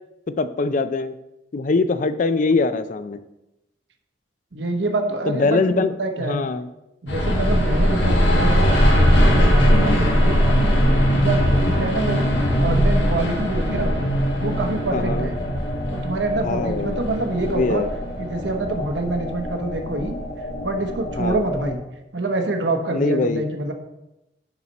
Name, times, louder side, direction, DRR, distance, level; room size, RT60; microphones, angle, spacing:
voice 1, 0.3-1.1 1.5-3.2 5.3-6.7 12.1-12.3 14.9-15.3 16.4-17.0 17.5-17.9 21.2-21.4 22.9-23.4, left 3 dB, 45° left, 12 dB, 0.4 m, -23 dB
voice 2, 4.5-6.4 7.0-10.8 11.1-13.9 14.4-15.4 15.9-17.8 18.2-20.2 20.6-21.8 22.1-23.7, right 2 dB, 85° right, 4 dB, 1.0 m, -26 dB
sound 1, 7.1-21.7, equal, 80° left, 1.5 m, -20 dB
10.5 x 4.2 x 4.2 m, 0.92 s
head